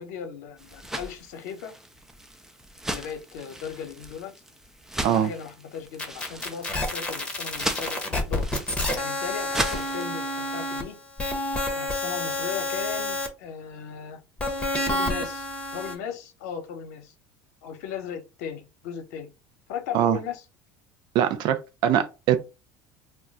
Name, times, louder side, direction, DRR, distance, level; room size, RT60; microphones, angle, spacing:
voice 1, 0.0-1.7 2.9-4.3 5.0-8.5 8.9-11.0 11.7-14.2 14.9-17.1 17.6-19.3 19.7-20.4, left 7 dB, 80° left, 0.7 m, -37 dB
sound 1, 0.6-10.1, right 1 dB, 5° right, 0.4 m, -37 dB
sound 2, 6.0-10.8 11.2-13.3 14.4-15.9, left 1 dB, 10° left, 0.9 m, -29 dB
voice 2, 21.1-22.4, right 10 dB, 60° right, 0.5 m, -22 dB
2.2 x 2.2 x 3.8 m
supercardioid pair, 100°, 9 cm